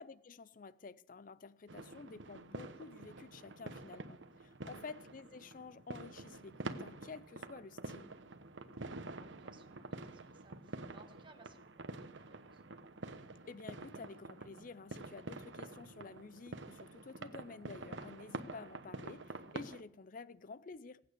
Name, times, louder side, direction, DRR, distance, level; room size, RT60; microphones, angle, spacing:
voice 1, 0.0-8.1 13.5-21.0, left 4 dB, 45° left, 0.5 m, -51 dB
sound 1, 1.7-19.8, right 2 dB, 85° right, 1.0 m, -48 dB
voice 2, 8.9-11.7 12.2-12.6, right 3 dB, 25° right, 1.5 m, -63 dB
21.5 x 9.0 x 6.7 m
head